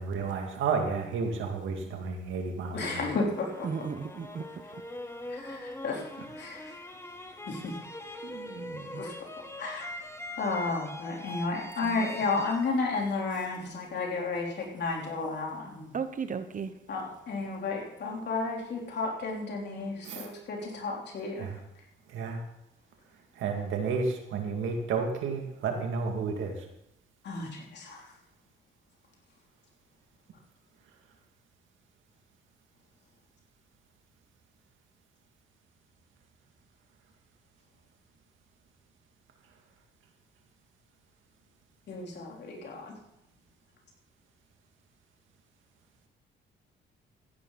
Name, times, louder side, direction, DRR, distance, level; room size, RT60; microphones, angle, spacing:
voice 1, 0.0-3.1 20.0-20.3 21.4-21.6 22.1-22.4 23.4-26.7, right 5 dB, 80° right, 3 dB, 2.3 m, -31 dB
voice 2, 2.7-3.7 5.3-6.1 6.4-6.7 7.5-7.7 9.0-9.1 9.6-9.9 10.4-15.9 16.9-21.5 27.2-28.1 41.9-42.9, left 3 dB, 60° left, -1 dB, 3.6 m, -32 dB
sound 1, 2.9-13.9, left 1 dB, 15° left, 1.2 m, -43 dB
voice 3, 3.6-4.8 8.2-9.1 11.8-12.1 15.9-16.7, right 6 dB, 40° right, 11 dB, 0.9 m, -36 dB
15.0 x 11.0 x 4.0 m, 0.81 s
cardioid pair, 90°, 20 cm